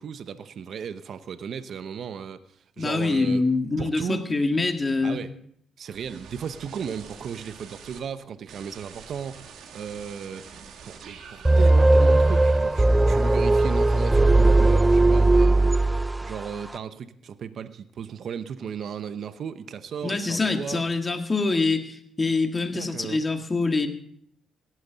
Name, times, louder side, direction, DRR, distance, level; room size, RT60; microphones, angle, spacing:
voice 1, 0.0-2.4 2.8-3.4 3.8-4.3 5.0-5.3 5.8-9.4 9.7-10.4 10.8-15.8 16.2-20.8 22.7-23.2, right 7 dB, 60° right, 0.8 m, -35 dB
voice 2, 2.8-5.2 20.0-23.9, left 3 dB, 25° left, 1.9 m, -25 dB
sound 1, 5.9-8.0 8.5-15.0 15.3-15.9, right 6 dB, 75° right, 1.9 m, -47 dB
sound 2, 11.4-16.4, right 2 dB, 15° right, 0.4 m, -18 dB
17.0 x 12.5 x 4.0 m
cardioid pair, 75°, 0 cm